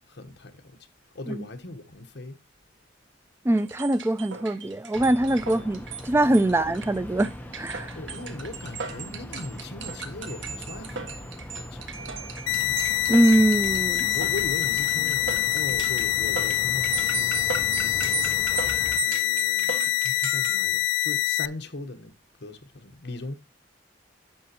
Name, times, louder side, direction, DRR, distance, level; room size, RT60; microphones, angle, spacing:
voice 1, 0.1-0.8 1.1-2.4 5.4-5.5 6.4-6.6 7.9-11.3 11.5-11.9 14.1-23.3, left 2 dB, 60° left, 1.1 m, -39 dB
voice 2, 3.4-7.3 7.6-7.9 13.1-14.2, right 1 dB, 15° right, 0.3 m, -22 dB
sound 1, 3.5-20.6, right 5 dB, 75° right, 1.5 m, -37 dB
sound 2, 4.9-19.0, left 1 dB, 10° left, 0.8 m, -40 dB
sound 3, 12.5-21.5, left 17 dB, 75° left, 0.4 m, -25 dB
10.5 x 6.7 x 2.9 m
head